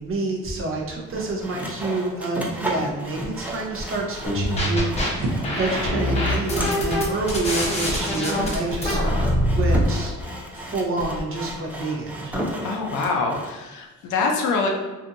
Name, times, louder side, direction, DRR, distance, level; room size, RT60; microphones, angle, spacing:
voice 1, 0.0-10.2 10.5-12.4, right 2 dB, 45° right, -1 dB, 0.7 m, -28 dB
Sawing, 1.1-13.5, equal, 5° right, 0.4 m, -34 dB
sound 1, 4.3-5.1 5.4-9.9, equal, 20° left, 0.7 m, -23 dB
sound 2, 4.4-10.5, right 2 dB, 85° right, 0.7 m, -38 dB
voice 2, 12.6-14.7, left 4 dB, 75° left, 1 dB, 0.6 m, -24 dB
2.6 x 2.4 x 2.5 m, 1.2 s
cardioid pair, 90°, 30 cm